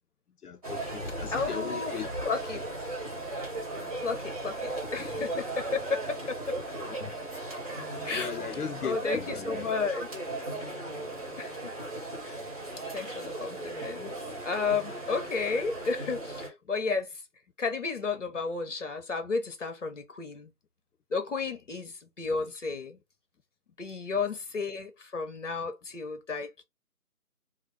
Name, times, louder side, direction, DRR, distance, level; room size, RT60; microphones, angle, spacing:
voice 1, 0.4-2.1 3.8-3.9 5.0-5.3 6.8-7.1 8.1-9.6, left 7 dB, 85° left, 0.6 m, -38 dB
sound 1, 0.6-16.5, right 2 dB, 25° right, 1.1 m, -37 dB
voice 2, 1.3-2.0 2.2-2.6 4.0-6.6 8.0-8.4 8.8-10.1 11.4-11.7 12.2-12.4 12.9-14.1 14.4-17.2 17.6-20.5 21.1-23.0 23.8-26.6, left 4 dB, 55° left, 0.9 m, -32 dB
3.4 x 2.0 x 3.3 m
figure-of-eight pair, 155°, 45 cm